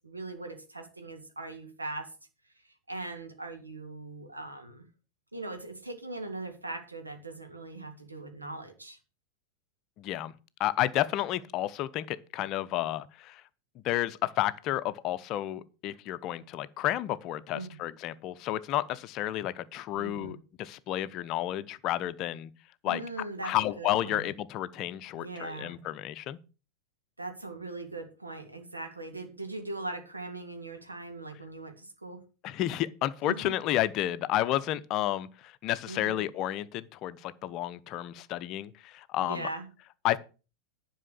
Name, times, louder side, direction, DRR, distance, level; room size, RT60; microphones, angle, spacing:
voice 1, 0.0-2.1 2.6-4.8 5.3-9.0 17.5-17.8 20.0-20.4 22.8-24.3 25.1-25.8 27.2-32.2 33.3-33.6 35.9-36.3 39.2-39.7, right 2 dB, 80° right, 1.9 m, -40 dB
voice 2, 10.0-10.3 10.6-13.4 13.8-22.5 22.8-23.0 23.4-26.4 32.4-39.5 40.0-40.2, left 14 dB, 40° left, 0.6 m, -31 dB
11.0 x 5.5 x 6.9 m
figure-of-eight pair, 90°, 0 cm